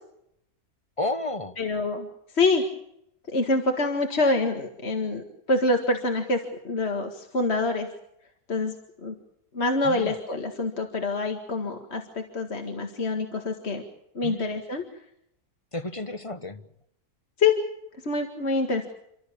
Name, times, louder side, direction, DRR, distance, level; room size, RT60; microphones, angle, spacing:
voice 1, 1.0-1.6 9.8-10.1 14.2-14.6 15.7-16.6, left 2 dB, 25° left, 10 dB, 1.1 m, -32 dB
voice 2, 1.6-2.1 2.3-2.6 3.3-7.9 8.5-8.8 9.0-9.1 9.5-13.8 14.2-14.8 17.4-17.5 18.1-18.9, left 3 dB, 45° left, 4 dB, 2.1 m, -26 dB
29.5 x 13.5 x 8.6 m, 0.77 s
omnidirectional pair, 1.6 m